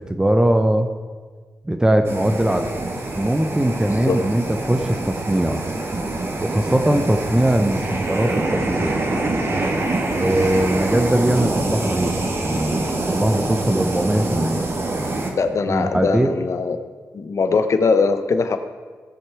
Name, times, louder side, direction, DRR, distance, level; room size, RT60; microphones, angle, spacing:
voice 1, 0.1-0.9 1.6-2.7 3.1-5.6 6.4-9.1 10.1-14.7 15.7-16.3, right 1 dB, 10° right, 6 dB, 0.7 m, -20 dB
sound 1, 2.0-15.3, right 2 dB, 45° right, 1.7 m, -25 dB
voice 2, 15.4-16.8 17.1-18.6, left 4 dB, 55° left, 8 dB, 0.8 m, -20 dB
16.5 x 6.5 x 4.7 m, 1.5 s
cardioid pair, 75°, 6 cm